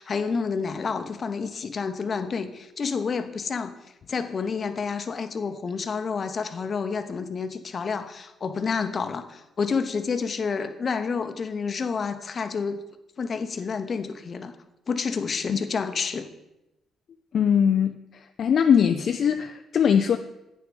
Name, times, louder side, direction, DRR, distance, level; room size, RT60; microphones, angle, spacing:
voice 1, 0.0-3.7 4.1-12.8 13.2-14.5 14.9-16.3, left 5 dB, 45° left, 9 dB, 0.8 m, -29 dB
voice 2, 17.3-17.9 18.4-20.2, left 7 dB, 60° left, 7 dB, 0.4 m, -20 dB
8.8 x 6.2 x 5.2 m, 0.92 s
cardioid pair, 90°, 0 cm